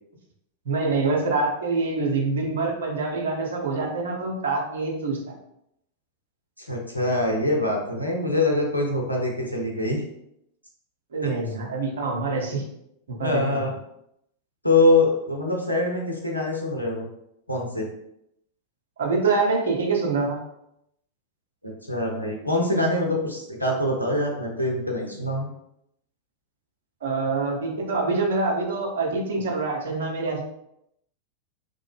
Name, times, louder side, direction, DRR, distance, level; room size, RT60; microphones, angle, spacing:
voice 1, 0.7-5.3 11.1-12.7 13.1-13.6 19.0-20.4 27.0-30.4, right 3 dB, 65° right, 0 dB, 0.6 m, -25 dB
voice 2, 6.6-10.0 11.2-11.3 13.2-13.7 14.6-17.1 17.5-17.9 21.6-25.5, left 2 dB, 90° left, -1 dB, 0.6 m, -24 dB
2.9 x 2.1 x 3.2 m, 0.78 s
figure-of-eight pair, 90°, 0 cm